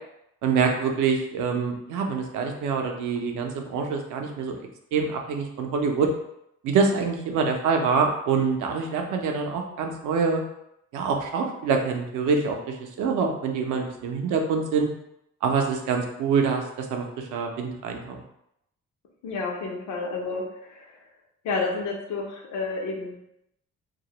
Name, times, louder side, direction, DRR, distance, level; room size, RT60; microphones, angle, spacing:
voice 1, 0.4-4.6 4.9-6.1 6.6-10.4 10.9-14.9 15.4-18.2, right 5 dB, 80° right, 3 dB, 0.5 m, -25 dB
voice 2, 19.2-20.9 21.4-23.2, left 3 dB, 70° left, 0 dB, 0.7 m, -30 dB
2.3 x 2.0 x 2.8 m, 0.79 s
cardioid pair, 90°, 30 cm